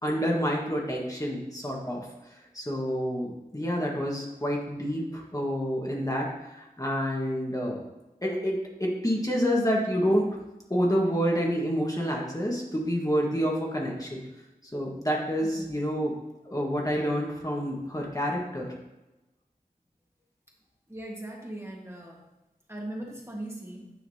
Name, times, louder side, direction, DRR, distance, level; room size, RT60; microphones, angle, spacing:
voice 1, 0.0-2.1 2.5-7.8 8.2-10.3 10.7-14.2 14.7-16.1 16.5-18.7, equal, 20° left, -2 dB, 1.5 m, -28 dB
voice 2, 20.9-22.2 22.7-23.9, right 1 dB, 15° right, -2 dB, 1.6 m, -39 dB
9.6 x 5.7 x 2.8 m, 0.99 s
wide cardioid pair, 40°, 16 cm